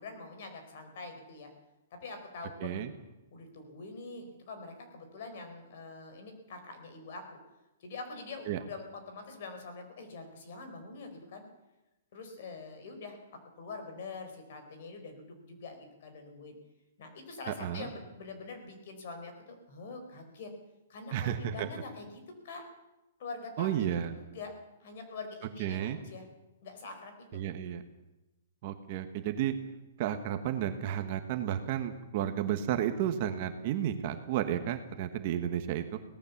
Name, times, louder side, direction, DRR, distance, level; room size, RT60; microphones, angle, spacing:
voice 1, 0.0-1.5 1.9-2.8 3.3-7.4 7.8-11.4 12.1-16.6 17.0-20.5 20.9-22.6 23.2-24.5 24.8-26.2 26.6-27.4, left 3 dB, 40° left, 6 dB, 4.6 m, -45 dB
voice 2, 2.6-2.9 8.5-8.6 17.5-17.9 21.1-21.7 23.6-24.1 25.6-26.0 27.3-27.8 28.6-29.5 30.0-36.0, right 10 dB, 30° right, 7 dB, 1.2 m, -32 dB
23.5 x 18.0 x 7.2 m, 0.99 s
hypercardioid pair, 180°, 0 cm